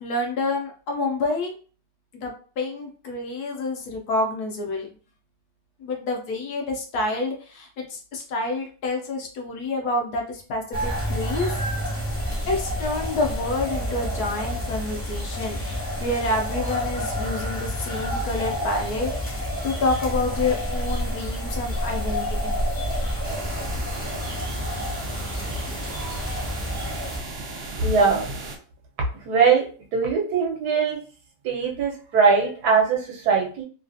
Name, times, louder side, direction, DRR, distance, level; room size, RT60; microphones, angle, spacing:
voice 1, 0.0-1.5 2.1-4.9 5.8-11.5 12.5-15.6 16.0-19.1 19.6-22.6, left 2 dB, 70° left, 2 dB, 1.1 m, -28 dB
sound 1, 10.7-27.2, equal, 15° left, 0.8 m, -29 dB
sound 2, 23.2-28.6, right 3 dB, 80° right, 0.5 m, -36 dB
voice 2, 27.8-28.2 29.2-29.6 29.9-31.0 31.4-33.6, right 5 dB, 65° right, 0 dB, 1.3 m, -21 dB
3.2 x 2.3 x 2.5 m, 0.39 s
omnidirectional pair, 1.9 m